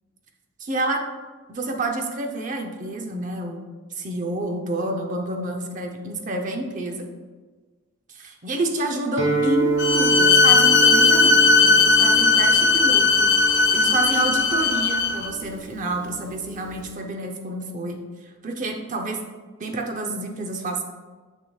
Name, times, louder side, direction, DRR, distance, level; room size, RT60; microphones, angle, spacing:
voice 1, 0.6-1.1 1.5-7.1 8.1-13.3 13.7-19.2 19.6-20.8, right 2 dB, 40° right, 3 dB, 0.6 m, -29 dB
Guitar, 9.2-16.9, right 3 dB, 60° right, 1.2 m, -28 dB
Bowed string instrument, 9.8-15.3, left 4 dB, 50° left, 0.6 m, -17 dB
6.4 x 6.3 x 2.3 m, 1.4 s
head